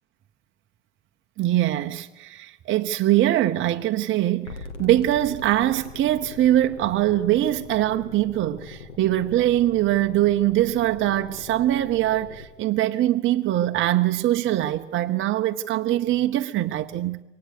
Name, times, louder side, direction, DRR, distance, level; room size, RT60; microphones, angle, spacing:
voice 1, 1.4-17.2, right 14 dB, 35° right, 0.8 m, -22 dB
sound 1, 4.4-12.5, left 4 dB, 75° left, 2.4 m, -41 dB
23.5 x 19.0 x 6.6 m
hypercardioid pair, 75°, 36 cm